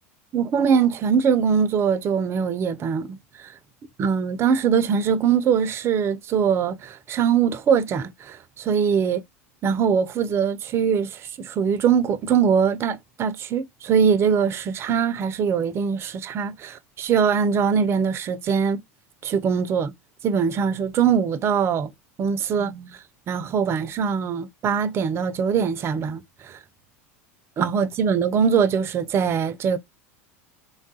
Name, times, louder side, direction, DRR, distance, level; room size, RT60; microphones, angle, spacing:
voice 1, 0.3-3.5 4.0-9.2 9.6-18.8 19.2-19.9 20.2-21.9 22.2-23.0 23.3-26.6 27.6-29.8, right 7 dB, 35° right, 0.4 m, -22 dB
3.3 x 2.3 x 2.6 m
hypercardioid pair, 100°, 8 cm